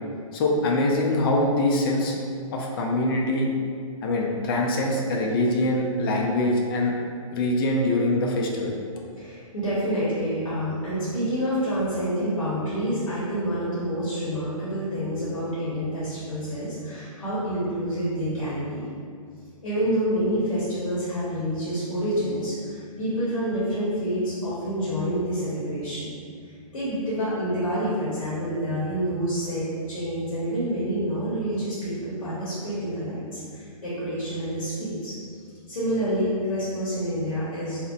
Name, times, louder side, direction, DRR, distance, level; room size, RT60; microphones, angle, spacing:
voice 1, 0.3-2.2 2.5-3.5 4.0-6.9 7.3-8.7, left 1 dB, 40° left, -1 dB, 0.4 m, -23 dB
voice 2, 9.2-18.8 19.6-26.1 26.5-35.1 35.7-37.8, equal, 85° left, -10 dB, 0.9 m, -28 dB
2.8 x 2.0 x 2.4 m, 2.2 s
hypercardioid pair, 135°, 18 cm